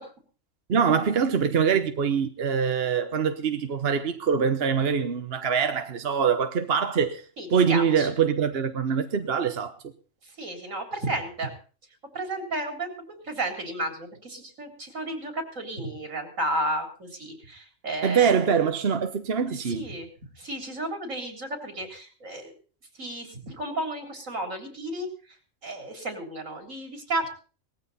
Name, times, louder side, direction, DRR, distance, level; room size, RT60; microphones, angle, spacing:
voice 1, 0.7-7.2 7.5-9.8 18.0-19.9, right 6 dB, 50° right, 1.1 m, -24 dB
voice 2, 7.4-8.1 10.4-11.5 12.1-18.5 19.6-20.1 20.4-22.5 23.0-25.1 25.6-27.3, right 1 dB, 75° right, 4.0 m, -33 dB
18.5 x 14.5 x 4.1 m
omnidirectional pair, 1.4 m